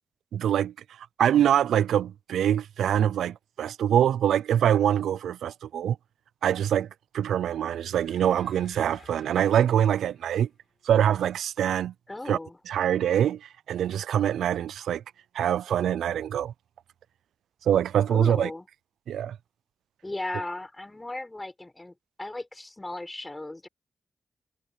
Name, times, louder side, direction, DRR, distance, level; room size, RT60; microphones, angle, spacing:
voice 1, 0.3-0.7 1.2-6.0 6.4-6.9 7.1-10.5 10.8-11.9 12.3-12.4 12.7-15.0 15.3-16.5 17.7-18.5 19.1-19.4, right 10 dB, 90° right, 0.4 m, -24 dB
sound 1, 8.0-11.0, left 5 dB, 60° left, 5.1 m, -55 dB
voice 2, 12.1-12.6 18.1-18.7 20.0-23.7, left 2 dB, 25° left, 6.0 m, -36 dB
supercardioid pair, 40°, 0 cm